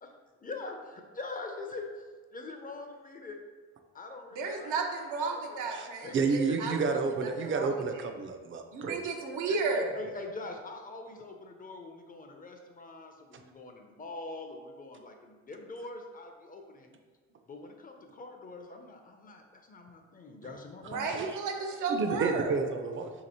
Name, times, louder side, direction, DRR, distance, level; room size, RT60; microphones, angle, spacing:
voice 1, 0.4-2.0 2.3-3.4 3.9-4.8 5.2-6.8 9.5-16.9 17.4-21.3, left 3 dB, 30° left, 4 dB, 0.5 m, -43 dB
voice 2, 4.3-6.7 7.2-7.7 8.7-9.9 20.9-22.5, right 4 dB, 85° right, 2 dB, 0.7 m, -33 dB
voice 3, 5.7-9.0 20.4-20.5 20.9-21.4 21.9-23.1, right 4 dB, 40° right, 6 dB, 0.5 m, -31 dB
2.9 x 2.9 x 4.1 m, 1.4 s
cardioid pair, 90°, 30 cm